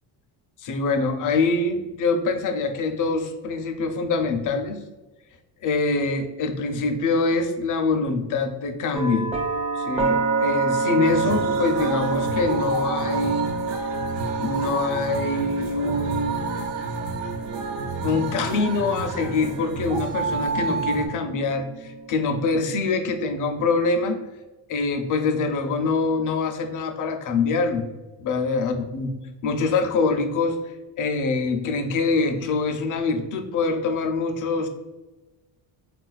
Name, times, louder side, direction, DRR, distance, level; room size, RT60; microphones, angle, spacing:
voice 1, 0.6-4.8 5.6-9.3 9.8-13.5 13.8-13.9 14.4-16.5 18.0-24.2 24.7-27.9 28.2-29.1 29.4-30.6 31.0-34.7, left 3 dB, 40° left, 6 dB, 0.5 m, -24 dB
sound 1, 8.9-22.8, right 4 dB, 15° right, 0.4 m, -29 dB
sound 2, 11.1-21.1, right 4 dB, 65° right, 0.6 m, -30 dB
3.7 x 2.4 x 2.3 m, 1.1 s
cardioid pair, 100°, 49 cm